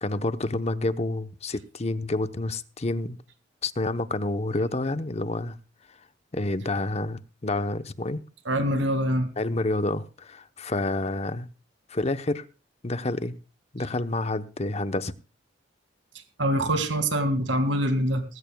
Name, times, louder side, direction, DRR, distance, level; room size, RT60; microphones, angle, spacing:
voice 1, 0.0-3.2 3.6-5.6 6.3-8.2 9.4-11.5 11.9-12.4 12.8-13.4 13.7-15.1, left 2 dB, 35° left, 0.8 m, -28 dB
voice 2, 8.5-9.3 16.4-18.2, right 1 dB, 85° right, 2.1 m, -24 dB
19.0 x 16.0 x 2.3 m
head